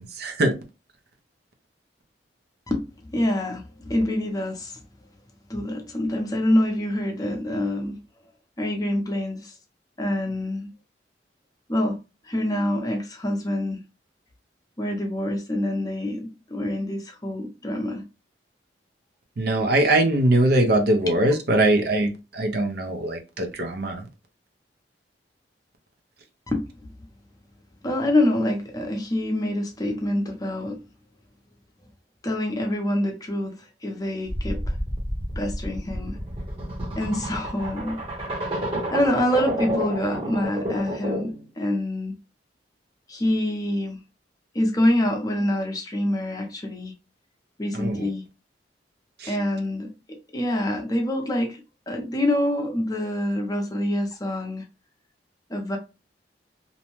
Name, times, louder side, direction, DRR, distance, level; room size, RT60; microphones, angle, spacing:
voice 1, 0.2-0.5 19.4-24.0 47.7-48.0 49.2-49.3, right 1 dB, 60° right, 0.5 m, -21 dB
voice 2, 3.1-4.8 5.5-8.0 8.6-9.5 10.0-10.7 11.7-12.0 12.2-13.8 14.8-18.0 21.1-21.2 26.5-26.9 27.8-30.8 32.2-34.7 35.4-36.2 37.0-38.0 38.9-42.1 43.1-44.0 44.5-46.9 47.6-48.2 49.3-49.9 50.3-51.6 51.9-54.6 55.5-55.8, left 1 dB, 20° left, 0.6 m, -26 dB
sound 1, 34.3-41.4, equal, 30° right, 0.9 m, -30 dB
2.6 x 2.1 x 3.0 m
head